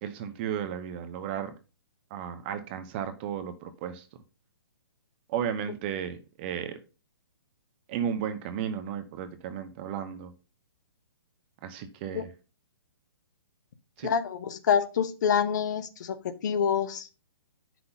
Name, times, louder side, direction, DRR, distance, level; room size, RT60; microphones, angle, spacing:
voice 1, 0.0-1.5 2.1-4.1 5.3-6.8 7.9-10.3 11.6-12.3 14.0-14.1, right 8 dB, 25° right, 0.8 m, -34 dB
voice 2, 14.0-17.1, left 7 dB, 50° left, 1.0 m, -27 dB
9.4 x 6.0 x 4.0 m
hypercardioid pair, 165°, 13 cm